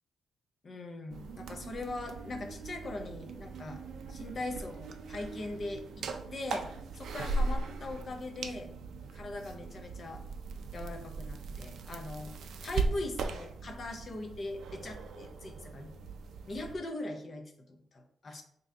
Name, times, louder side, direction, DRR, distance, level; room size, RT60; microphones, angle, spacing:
voice 1, 0.6-3.8 4.1-6.1 6.3-6.7 6.9-8.7 9.1-10.2 10.7-12.4 12.6-15.9 16.5-18.4, left 2 dB, 35° left, 4 dB, 0.5 m, -40 dB
sound 1, 1.1-16.7, right 3 dB, 65° right, 0.4 m, -39 dB
3.8 x 2.7 x 3.3 m, 0.68 s
wide cardioid pair, 180°, 0 cm